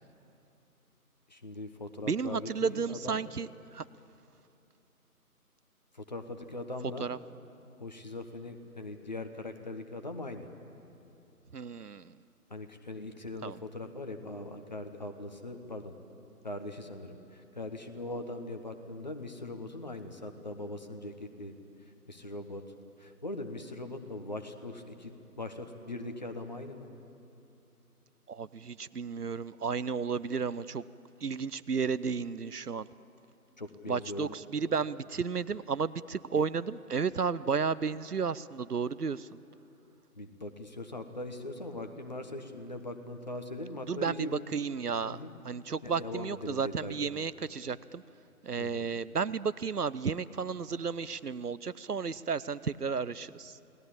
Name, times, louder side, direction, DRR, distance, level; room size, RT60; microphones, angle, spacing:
voice 1, 1.3-3.2 5.9-7.1 7.8-10.5 12.5-15.9 16.4-21.5 22.1-22.6 23.0-26.9 33.6-34.4 40.2-44.4 45.0-45.3 45.8-47.0 48.6-48.9, left 2 dB, 30° left, 6 dB, 1.2 m, -41 dB
voice 2, 2.0-3.8 7.0-7.2 11.5-12.2 13.4-13.6 28.3-30.8 31.2-32.9 33.9-39.4 43.9-45.2 45.4-48.0 48.4-53.6, right 5 dB, 80° right, 17 dB, 0.8 m, -33 dB
29.0 x 19.0 x 8.8 m, 2.8 s
figure-of-eight pair, 155°, 46 cm